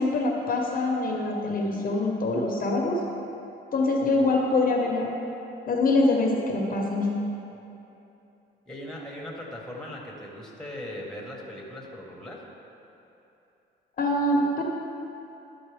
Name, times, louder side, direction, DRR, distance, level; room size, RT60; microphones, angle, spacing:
voice 1, 0.0-3.0 3.7-5.1 5.7-7.1 14.0-14.6, left 2 dB, 45° left, 0 dB, 0.8 m, -24 dB
voice 2, 8.7-12.4, left 1 dB, 5° left, -2 dB, 1.3 m, -39 dB
11.5 x 4.1 x 3.4 m, 2.8 s
cardioid pair, 90°, 20 cm